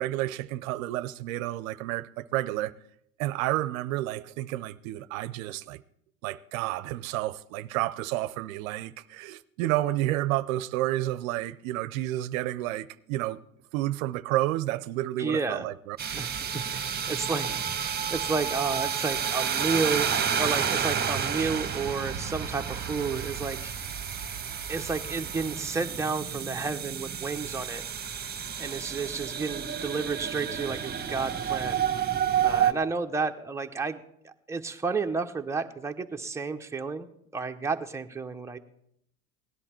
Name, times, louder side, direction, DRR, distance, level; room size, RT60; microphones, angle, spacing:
voice 1, 0.0-2.7 3.2-5.8 6.2-13.4 13.7-16.0, right 15 dB, 75° right, 0.6 m, -30 dB
voice 2, 15.2-15.7 16.1-23.7 24.7-27.8 28.6-31.8 32.4-37.1 37.3-38.6, right 4 dB, 5° right, 0.9 m, -31 dB
sound 1, 16.0-32.7, right 8 dB, 25° right, 1.3 m, -30 dB
17.0 x 11.0 x 4.4 m
hypercardioid pair, 85°, 41 cm